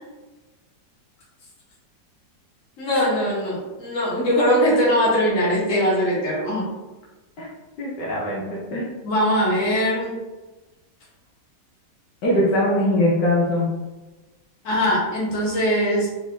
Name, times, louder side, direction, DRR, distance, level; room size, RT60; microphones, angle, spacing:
voice 1, 2.8-6.7 9.0-10.1 14.6-16.1, equal, 50° left, -5 dB, 1.6 m, -21 dB
voice 2, 7.8-8.9 12.2-13.7, left 1 dB, 75° left, -5 dB, 1.4 m, -21 dB
4.4 x 3.1 x 2.7 m, 1.2 s
omnidirectional pair, 1.9 m